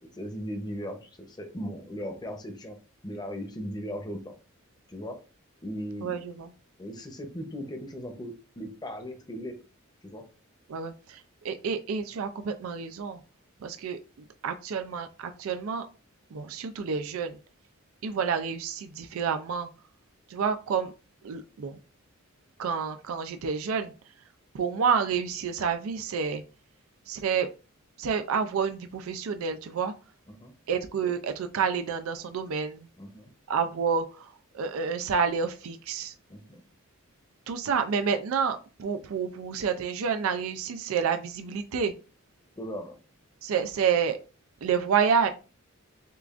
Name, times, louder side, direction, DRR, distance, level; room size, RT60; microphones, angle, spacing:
voice 1, 0.0-2.8 3.0-4.3 4.9-5.2 5.6-6.1 6.8-9.5 10.0-10.2 30.3-30.5 33.0-33.3 36.3-36.6 42.6-43.0, equal, 20° left, 5 dB, 0.7 m, -38 dB
voice 2, 6.0-6.5 10.7-13.2 13.6-14.0 14.4-15.9 16.3-17.4 18.0-19.7 20.3-20.9 21.2-21.8 22.6-23.9 24.5-26.4 27.1-27.5 28.0-29.9 30.7-32.9 33.5-34.3 34.5-36.1 37.5-41.9 43.4-44.2 44.6-45.3, right 6 dB, 75° right, 8 dB, 0.4 m, -29 dB
6.6 x 2.4 x 2.4 m, 0.34 s
head